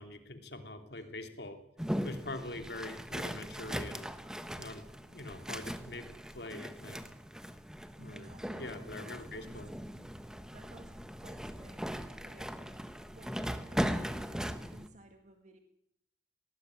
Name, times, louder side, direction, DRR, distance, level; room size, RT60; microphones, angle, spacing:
voice 1, 0.0-1.6 2.0-4.1 4.6-6.1 6.3-7.0 8.0-8.3 8.6-9.7, left 2 dB, 65° left, 6 dB, 3.1 m, -44 dB
voice 2, 0.9-1.3 8.0-9.6 10.5-12.6 13.1-15.6, right 1 dB, 40° right, 5 dB, 2.0 m, -57 dB
sound 1, 1.8-14.9, equal, 5° right, 1.2 m, -39 dB
19.5 x 19.0 x 9.8 m, 0.74 s
head